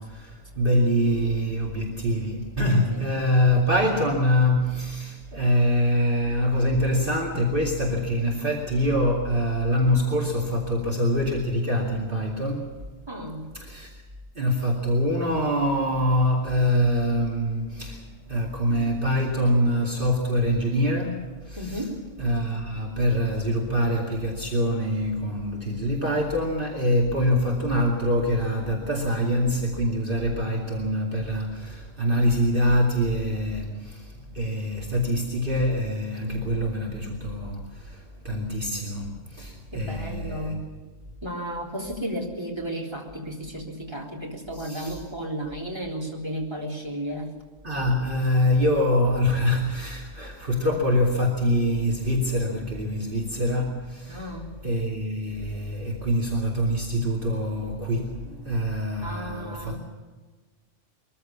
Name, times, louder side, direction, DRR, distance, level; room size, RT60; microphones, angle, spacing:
voice 1, 0.0-12.8 13.5-14.0 14.3-21.8 22.2-40.5 44.5-45.0 47.6-54.3 54.6-59.8, equal, 45° right, -1 dB, 2.6 m, -25 dB
voice 2, 13.1-13.5 21.6-22.0 39.7-40.7 41.2-47.3 54.1-54.5 59.0-59.8, equal, 20° right, -1 dB, 3.7 m, -33 dB
22.5 x 14.5 x 8.5 m, 1.4 s
omnidirectional pair, 1.3 m